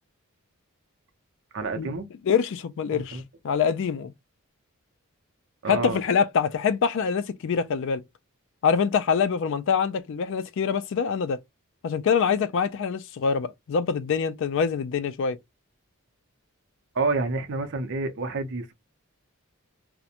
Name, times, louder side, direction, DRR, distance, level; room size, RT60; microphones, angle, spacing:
voice 1, 1.5-2.1 2.9-3.2 5.6-6.0 16.9-18.7, right 3 dB, 60° right, 0.6 m, -28 dB
voice 2, 2.3-4.1 5.7-8.0 8.6-11.4 11.8-15.4, left 6 dB, 60° left, 0.3 m, -25 dB
2.4 x 2.1 x 2.8 m
head